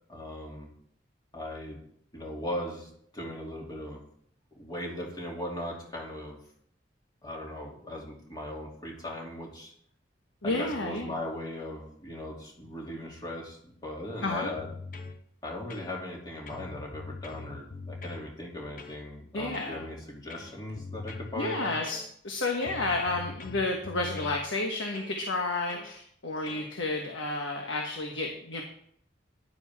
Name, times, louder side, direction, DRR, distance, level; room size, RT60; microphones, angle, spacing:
voice 1, 0.1-0.7 1.3-1.8 2.1-4.1 4.5-6.4 7.2-9.7 10.4-14.7 15.4-21.7, left 1 dB, 20° left, -3 dB, 2.7 m, -38 dB
voice 2, 10.4-11.1 14.2-14.5 19.3-19.8 21.4-28.6, left 2 dB, 85° left, 1 dB, 1.4 m, -31 dB
sound 1, 14.6-15.2 15.7-16.2 16.5-18.2 18.8-19.0 19.5-19.8 20.3-21.4 21.9-22.3 22.6-24.4 24.9-25.2 25.7-25.9 26.5-26.7, left 3 dB, 45° left, 1.0 m, -42 dB
12.0 x 10.5 x 3.6 m, 0.67 s
head